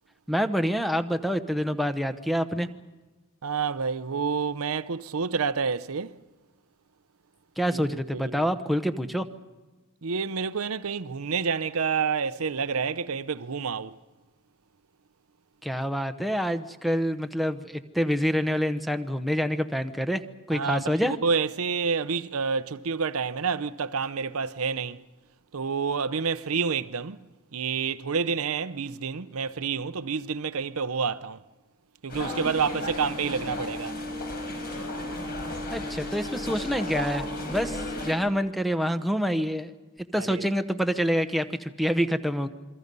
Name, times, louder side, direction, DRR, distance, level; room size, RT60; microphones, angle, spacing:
voice 1, 0.3-2.7 7.6-9.3 15.6-20.2 20.5-21.2 35.7-39.7 40.1-42.5, equal, ahead, 0.9 m, -27 dB
voice 2, 3.4-6.2 7.7-8.5 10.0-13.9 20.5-25.0 25.5-27.2 27.5-31.4 32.0-33.9 40.2-40.5, right 5 dB, 80° right, 0.7 m, -29 dB
sound 1, 32.1-38.1, left 1 dB, 45° left, 4.6 m, -33 dB
28.0 x 23.5 x 5.4 m
head